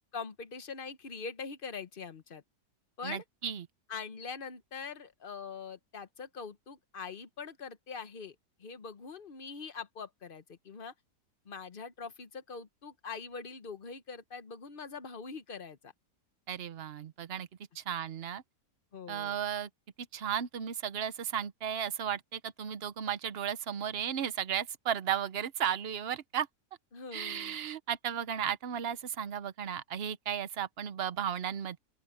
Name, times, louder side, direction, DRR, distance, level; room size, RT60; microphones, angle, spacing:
voice 1, 0.1-2.4 3.0-3.2 3.9-10.9 11.4-15.9 18.9-19.4 26.9-27.6, left 5 dB, 35° left, 1.0 m, -43 dB
voice 2, 3.0-3.7 16.5-17.5 17.8-18.4 19.1-19.7 20.1-26.5 27.1-31.8, right 9 dB, 50° right, 0.7 m, -34 dB
open air
omnidirectional pair, 1.8 m